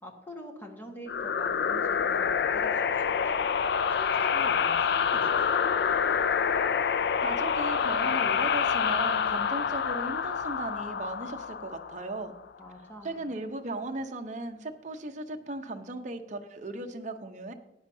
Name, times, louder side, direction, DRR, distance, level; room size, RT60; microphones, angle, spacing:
voice 1, 0.0-3.4 4.0-5.7 12.6-13.3, left 1 dB, 10° left, 1 dB, 1.5 m, -44 dB
sound 1, 1.1-12.4, left 7 dB, 60° left, 0.3 m, -27 dB
voice 2, 7.2-12.3 13.0-17.5, right 2 dB, 45° right, 5 dB, 0.8 m, -37 dB
15.0 x 9.9 x 2.7 m, 0.88 s
head